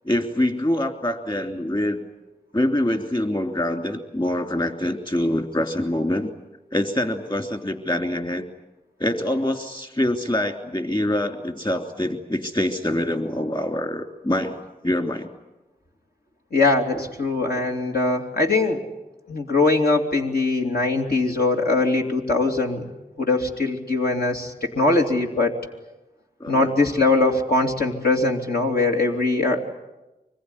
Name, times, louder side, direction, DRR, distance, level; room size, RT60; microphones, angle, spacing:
voice 1, 0.0-2.0 2.5-6.3 6.7-8.5 9.0-14.5 14.8-15.3 26.4-26.7, left 1 dB, 30° left, 5 dB, 3.1 m, -25 dB
voice 2, 16.5-18.8 19.3-22.8 23.2-25.5 26.5-29.7, left 3 dB, 75° left, 0 dB, 2.9 m, -21 dB
25.5 x 21.0 x 9.9 m, 1.0 s
wide cardioid pair, 50°, 16 cm